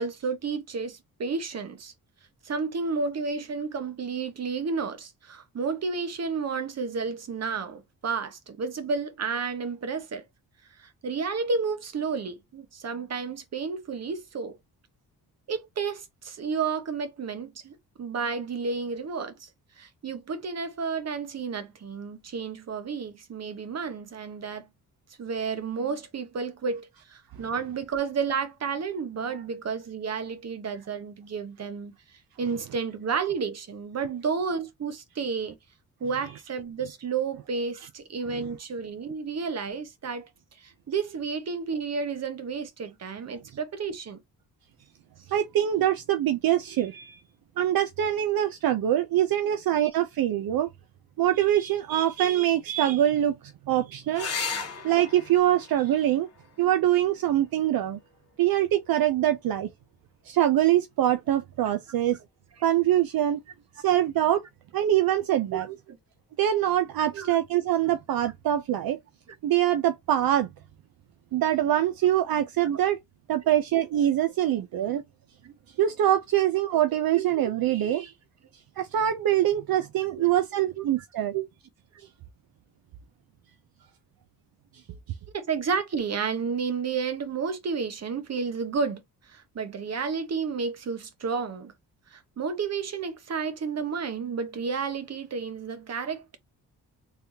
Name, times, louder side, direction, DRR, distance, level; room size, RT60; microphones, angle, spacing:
voice 1, 0.0-1.9 2.4-10.2 10.8-14.6 15.5-19.5 19.8-24.6 25.2-31.9 32.4-35.6 36.0-40.3 40.6-44.2 65.5-66.0 67.1-67.4 75.4-75.5 77.1-77.4 80.1-80.3 80.8-80.9 81.3-81.4 85.3-89.0 89.3-91.7 92.1-96.4, right 5 dB, 45° right, 1.0 m, -31 dB
voice 2, 45.3-47.2 47.6-50.7 51.2-53.4 53.7-54.3 54.8-56.3 56.6-58.0 58.4-59.7 60.3-62.2 62.6-63.4 63.8-64.4 64.7-65.7 66.4-69.0 69.4-70.5 71.3-73.0 73.3-75.0 75.8-78.1 78.8-81.3, right 12 dB, 65° right, 0.6 m, -24 dB
sound 1, 54.1-59.2 61.1-61.7 65.1-65.3 65.6-65.7, left 5 dB, 40° left, 1.5 m, -38 dB
3.4 x 3.3 x 2.8 m
cardioid pair, 115°, 38 cm